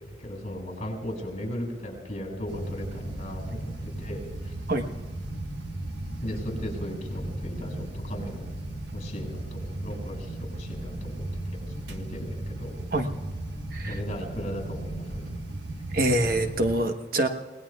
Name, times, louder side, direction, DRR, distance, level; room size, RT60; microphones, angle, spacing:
voice 1, 0.0-4.5 6.2-8.4 8.9-12.7 13.8-15.3, equal, 40° left, 0 dB, 6.4 m, -37 dB
sound 1, 2.5-16.7, right 1 dB, 80° right, 1.4 m, -36 dB
voice 2, 15.9-17.3, right 1 dB, 55° right, 5 dB, 1.1 m, -25 dB
30.0 x 18.5 x 2.4 m, 1.4 s
head